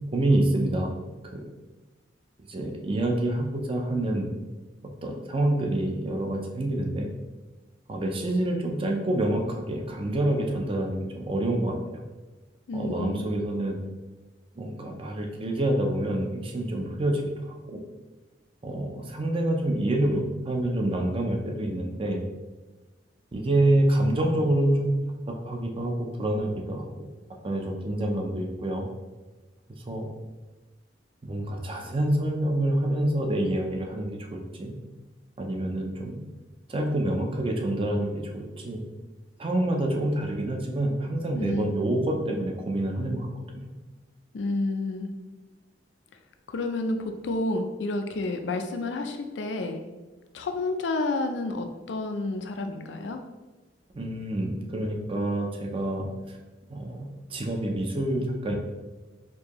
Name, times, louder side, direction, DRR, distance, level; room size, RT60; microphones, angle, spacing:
voice 1, 0.1-0.9 1.3-1.4 2.5-4.3 5.0-7.1 7.9-12.0 12.7-13.8 14.6-17.8 18.6-22.2 23.3-25.0 25.3-26.9 27.4-28.9 29.9-30.1 31.2-34.7 35.4-36.2 36.7-38.8 39.4-43.7 53.9-56.4 56.7-57.0 57.3-58.5, right 1 dB, 30° right, 2 dB, 0.5 m, -27 dB
voice 2, 12.7-13.2 41.4-41.7 44.3-45.1 46.5-49.8 50.3-53.2, left 2 dB, 75° left, 6 dB, 0.4 m, -30 dB
4.4 x 2.6 x 3.0 m, 1.2 s
head